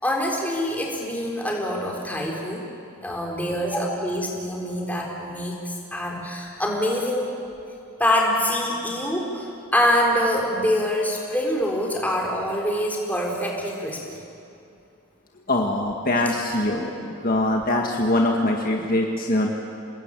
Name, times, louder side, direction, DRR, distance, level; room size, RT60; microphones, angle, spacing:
voice 1, 0.0-2.7 3.0-7.3 8.0-14.2, equal, 5° left, -2 dB, 4.0 m, -25 dB
voice 2, 15.5-19.5, left 1 dB, 40° left, 1 dB, 1.8 m, -23 dB
28.0 x 20.0 x 9.0 m, 2.6 s
head